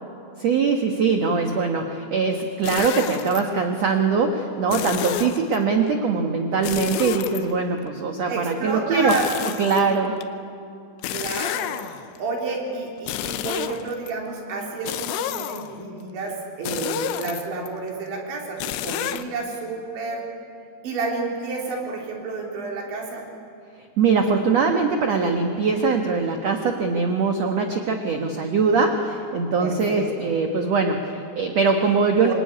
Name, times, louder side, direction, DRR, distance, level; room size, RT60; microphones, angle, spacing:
voice 1, 0.4-9.2 9.6-10.2 24.0-32.3, right 4 dB, 70° right, 4 dB, 1.6 m, -22 dB
sound 1, 2.6-3.4 4.7-5.6 6.6-7.9 9.1-10.2 11.0-12.2 13.0-14.1 14.9-15.8 16.7-17.7 18.6-19.2, left 13 dB, 85° left, 3.2 m, -30 dB
voice 2, 8.3-9.3 11.1-11.8 12.2-20.2 20.8-23.2 29.6-30.3 32.3-32.4, right 3 dB, 85° right, -1 dB, 6.2 m, -30 dB
26.5 x 22.5 x 9.9 m, 2.5 s
omnidirectional pair, 5.1 m